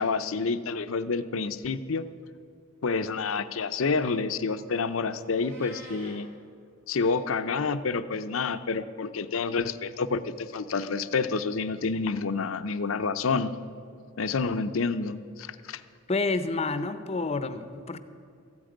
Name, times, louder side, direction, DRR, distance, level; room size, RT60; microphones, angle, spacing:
voice 1, 0.0-2.1 2.8-6.3 6.9-13.5 14.2-15.8, left 4 dB, 80° left, 12 dB, 0.6 m, -28 dB
Meow, 5.4-6.2, right 1 dB, 65° right, 3.3 m, -48 dB
voice 2, 16.1-18.0, left 3 dB, 30° left, 11 dB, 0.7 m, -29 dB
14.0 x 8.8 x 9.1 m, 2.2 s
head